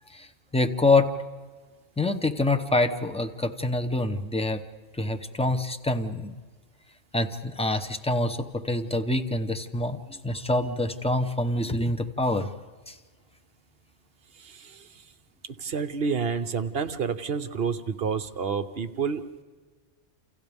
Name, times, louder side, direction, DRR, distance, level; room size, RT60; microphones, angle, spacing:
voice 1, 0.5-1.1 2.0-4.6 5.0-6.3 7.1-12.5 12.9-13.0, left 2 dB, 5° left, 7 dB, 0.8 m, -26 dB
voice 2, 14.3-15.1 15.5-19.3, right 5 dB, 55° right, 9 dB, 1.0 m, -29 dB
29.0 x 28.5 x 3.6 m, 1.5 s
omnidirectional pair, 1.3 m